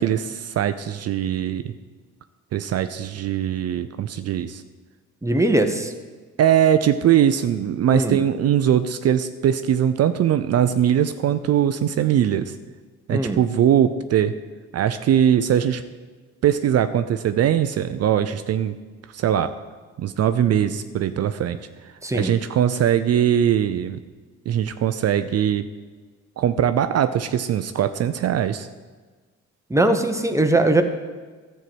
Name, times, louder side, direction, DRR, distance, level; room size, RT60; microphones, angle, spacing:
voice 1, 0.0-1.7 2.5-4.6 6.4-12.5 13.1-14.3 14.7-15.8 16.4-18.7 19.1-19.5 20.0-21.6 22.1-24.0 24.5-25.7 26.4-28.7, right 10 dB, 55° right, 10 dB, 0.5 m, -21 dB
voice 2, 5.2-5.9 7.9-8.2 13.1-13.4 22.0-22.3 29.7-30.8, right 2 dB, 10° right, 6 dB, 1.0 m, -20 dB
11.0 x 4.5 x 7.9 m, 1.4 s
cardioid pair, 90°, 30 cm